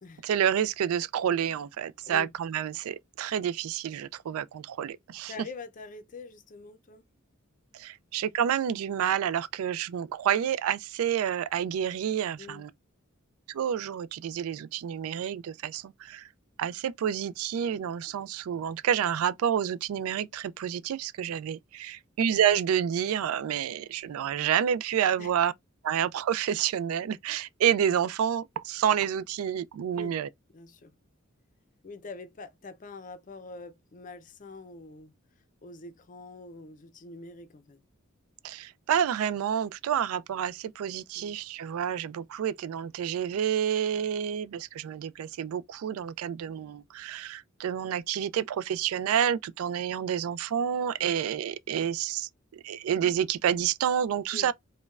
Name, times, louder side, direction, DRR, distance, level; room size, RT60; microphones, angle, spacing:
voice 1, 0.2-5.3 7.7-12.7 13.5-16.3 16.6-25.5 25.8-30.3 38.4-54.5, right 9 dB, 85° right, 0.3 m, -29 dB
voice 2, 5.3-7.1 12.4-12.7 25.2-25.3 29.9-30.2 30.5-30.9 31.8-35.1 35.6-37.8 41.1-41.3 51.0-51.2 54.3-54.5, left 3 dB, 40° left, 0.5 m, -45 dB
5.1 x 2.2 x 2.3 m
head